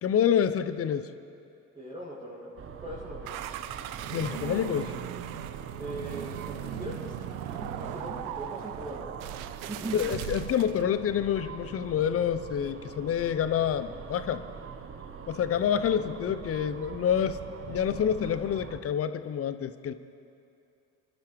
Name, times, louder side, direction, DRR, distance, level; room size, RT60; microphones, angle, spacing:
voice 1, 0.0-1.1 4.1-5.0 9.9-14.4 15.3-17.4 17.7-19.9, left 8 dB, 35° left, 12 dB, 0.7 m, -27 dB
voice 2, 1.7-2.5 2.8-3.5 5.8-9.2 9.7-10.1, right 1 dB, 15° right, -7 dB, 2.4 m, -40 dB
sound 1, 2.6-18.8, right 6 dB, 30° right, 1.0 m, -43 dB
sound 2, 3.3-10.8, right 12 dB, 75° right, 0.7 m, -38 dB
25.0 x 11.5 x 3.2 m, 2.5 s
hypercardioid pair, 65°, 43 cm